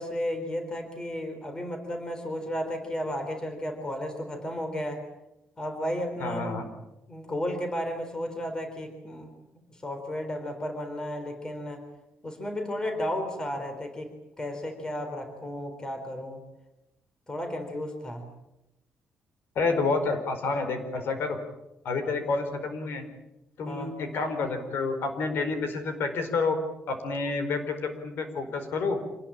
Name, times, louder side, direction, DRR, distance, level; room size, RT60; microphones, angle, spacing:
voice 1, 0.0-5.0 5.6-6.7 7.1-9.3 9.6-11.8 12.2-16.4 17.3-18.2 23.7-23.9, equal, 15° left, 6 dB, 4.2 m, -33 dB
voice 2, 6.2-6.6 19.5-21.4 21.8-23.0 23.6-26.6 26.9-29.0, left 4 dB, 60° left, 8 dB, 4.7 m, -29 dB
27.0 x 20.0 x 8.9 m, 0.93 s
cardioid pair, 160°, 4 cm